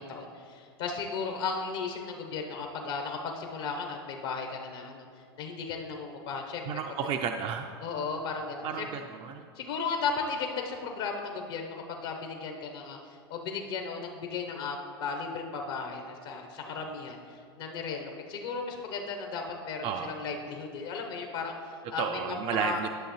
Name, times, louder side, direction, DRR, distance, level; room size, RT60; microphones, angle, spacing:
voice 1, 0.0-5.0 5.4-6.6 7.8-8.8 9.5-13.0 13.3-17.2 17.6-22.1 22.6-22.8, left 5 dB, 70° left, 3 dB, 0.9 m, -35 dB
voice 2, 6.7-7.7 8.6-9.5 19.8-20.2 22.0-22.9, right 7 dB, 40° right, 5 dB, 0.4 m, -32 dB
11.0 x 6.4 x 3.1 m, 2.3 s
hypercardioid pair, 95°, 14 cm